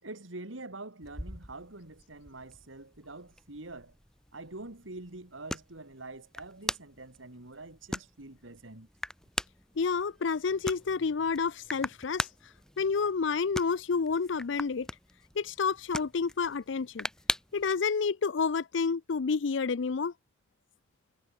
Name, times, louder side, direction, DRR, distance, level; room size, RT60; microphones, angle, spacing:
voice 1, 0.0-3.9 4.3-8.9, right 2 dB, 90° right, 2.8 m, -45 dB
sound 1, 1.0-17.7, left 1 dB, 5° left, 4.1 m, -41 dB
voice 2, 9.8-12.3 12.8-14.9 15.4-17.1 17.5-20.1, left 5 dB, 70° left, 0.5 m, -29 dB
head